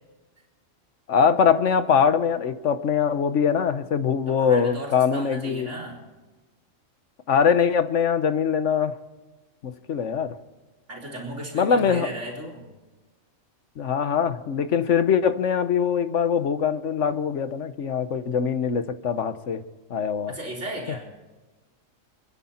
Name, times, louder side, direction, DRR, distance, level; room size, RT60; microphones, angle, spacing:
voice 1, 1.1-5.7 7.3-9.0 9.6-10.3 11.5-12.1 13.8-19.6 19.9-20.3, left 7 dB, 70° left, 11 dB, 1.3 m, -22 dB
voice 2, 4.3-6.0 10.9-12.7 20.3-21.1, right 1 dB, 65° right, -2 dB, 4.2 m, -35 dB
28.5 x 10.5 x 4.3 m, 1.2 s
omnidirectional pair, 1.4 m